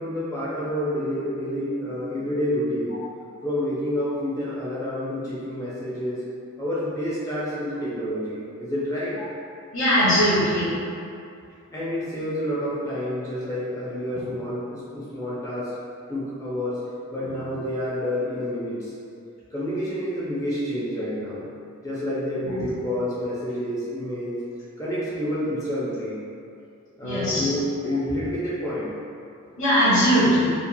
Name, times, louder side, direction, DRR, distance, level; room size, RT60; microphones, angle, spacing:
voice 1, 0.0-3.0 3.4-6.3 6.6-9.2 11.7-15.7 16.1-16.8 17.1-18.9 19.5-21.5 21.8-24.4 24.8-26.3 27.0-29.0, equal, 15° left, -8 dB, 0.5 m, -28 dB
voice 2, 9.7-10.7 22.4-22.6 27.0-27.5 28.1-28.2 29.6-30.5, equal, 65° left, -14 dB, 0.8 m, -20 dB
2.9 x 2.3 x 2.2 m, 2.5 s
head